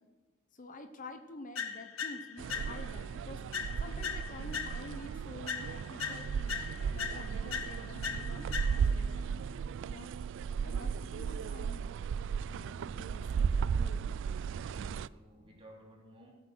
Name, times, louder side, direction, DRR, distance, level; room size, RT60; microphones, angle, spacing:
voice 1, 0.5-9.4 9.9-10.1 10.6-12.2 12.5-14.0, left 2 dB, 40° left, 7 dB, 0.9 m, -49 dB
sound 1, 1.5-3.0 3.5-5.1 5.5-9.1, left 7 dB, 85° left, 1.4 m, -40 dB
sound 2, 2.4-15.1, right 6 dB, 65° right, 0.3 m, -35 dB
voice 2, 14.6-16.3, equal, 25° right, -2 dB, 3.5 m, -56 dB
17.5 x 8.2 x 6.2 m, 1.3 s
head